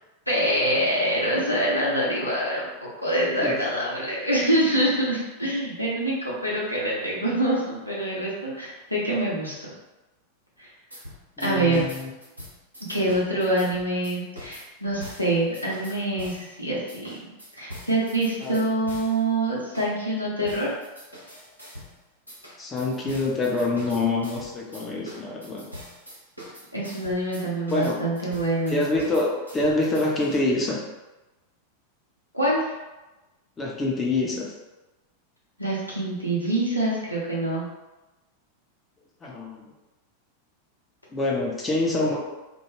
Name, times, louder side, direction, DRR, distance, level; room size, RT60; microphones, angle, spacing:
voice 1, 0.3-9.7 10.6-10.7 11.4-11.8 12.9-17.3 17.6-20.7 26.7-28.8 32.3-32.7 35.6-37.7, right 1 dB, 90° left, -6 dB, 0.7 m, -25 dB
sound 1, 10.9-16.5 16.9-19.2 19.7-19.9 20.4-22.0 22.3-30.4, equal, 85° right, 0.7 m, -43 dB
voice 2, 11.4-12.1 18.4-18.6 22.6-25.7 27.7-28.0 28.7-30.8 33.6-34.5 39.2-39.7 41.1-42.2, left 2 dB, 20° left, -3 dB, 0.6 m, -26 dB
2.2 x 2.1 x 3.1 m, 1.1 s
figure-of-eight pair, 90°, 0 cm